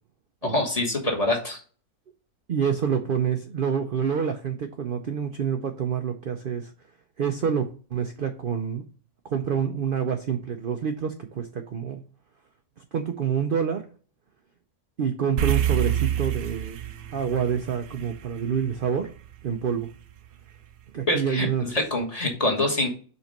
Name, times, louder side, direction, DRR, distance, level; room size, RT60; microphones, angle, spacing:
voice 1, 0.4-1.6 21.1-22.9, left 1 dB, 25° left, 0 dB, 1.4 m, -25 dB
voice 2, 2.5-6.7 7.2-8.8 9.2-12.0 12.9-13.8 15.0-16.8 17.1-19.1 19.4-19.9 20.9-21.7, right 7 dB, 55° right, 7 dB, 0.6 m, -27 dB
sound 1, 15.4-19.9, right 11 dB, 75° right, 1.1 m, -28 dB
5.5 x 4.2 x 5.2 m, 0.40 s
omnidirectional pair, 1.5 m